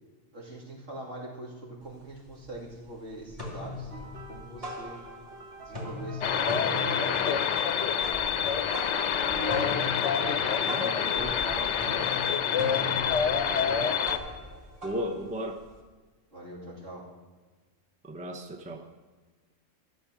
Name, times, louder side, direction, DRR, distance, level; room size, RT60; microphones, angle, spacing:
voice 1, 0.3-5.0 5.6-8.5 9.3-13.8 16.3-17.0, right 1 dB, 65° right, -4 dB, 2.9 m, -41 dB
sound 1, 1.8-1.9 2.3-2.9 3.2-5.4 5.6-15.8, left 2 dB, 25° right, 2.4 m, -40 dB
sound 2, 3.9-12.2 13.0-13.3 15.1-15.2, right 1 dB, 50° right, 1.2 m, -46 dB
sound 3, 6.2-14.2, left 7 dB, 65° left, 1.0 m, -27 dB
voice 2, 10.6-11.4 14.8-15.6 18.0-18.9, equal, 10° right, 4 dB, 0.6 m, -35 dB
12.5 x 7.1 x 5.9 m, 1.4 s
omnidirectional pair, 1.3 m